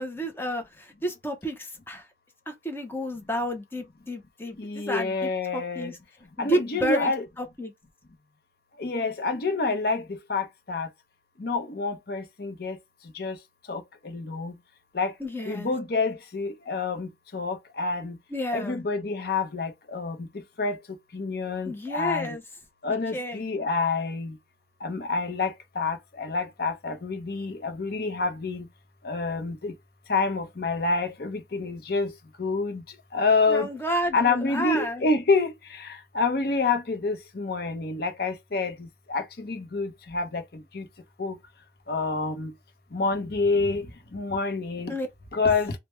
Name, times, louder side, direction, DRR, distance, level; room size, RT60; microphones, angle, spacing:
voice 1, 0.0-2.0 2.5-6.0 6.4-7.1 7.4-7.7 15.2-15.7 18.3-18.8 21.7-22.4 23.1-23.4 33.5-35.0 44.9-45.1, equal, 10° left, 0.6 m, -31 dB
voice 2, 4.6-5.9 6.4-7.3 8.8-10.0 10.3-10.9 11.4-12.8 13.2-13.4 13.7-14.5 14.9-15.1 15.5-18.1 18.5-20.1 20.6-20.8 21.1-22.3 22.8-24.3 24.8-28.6 29.0-29.7 30.1-32.1 32.4-32.8 33.1-33.7 34.1-35.5 36.1-38.7 39.1-40.4 40.7-40.8 41.2-41.3 41.9-42.5 42.9-43.8 44.1-44.9 45.3-45.7, left 3 dB, 55° left, 0.7 m, -27 dB
3.3 x 2.1 x 3.0 m
head